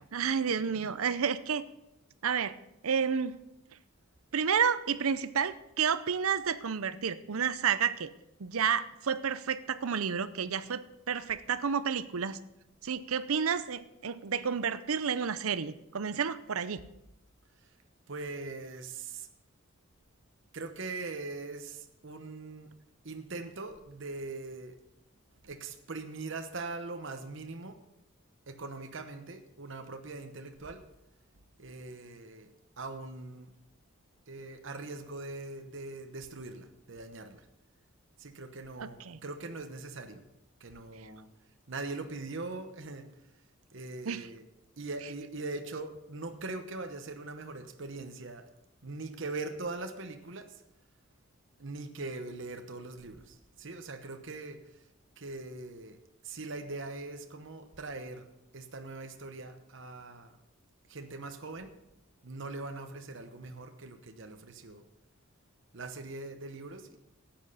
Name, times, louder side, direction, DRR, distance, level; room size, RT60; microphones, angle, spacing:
voice 1, 0.1-1.6 2.2-2.5 2.8-3.4 4.3-8.1 8.4-12.4 12.8-16.8 38.8-39.2 44.0-44.3, right 7 dB, 80° right, 14 dB, 0.6 m, -30 dB
voice 2, 18.1-19.3 20.5-22.7 23.0-24.8 25.4-27.8 28.5-30.8 31.6-32.5 32.8-33.5 34.3-37.4 38.2-40.2 40.6-41.3 41.7-43.1 43.7-44.5 44.8-48.4 48.8-50.5 51.6-54.6 55.2-56.0 56.2-58.3 58.5-60.4 60.9-61.7 62.2-64.8 65.7-67.0, right 3 dB, 60° right, 7 dB, 1.0 m, -41 dB
12.5 x 8.9 x 5.6 m, 0.87 s
head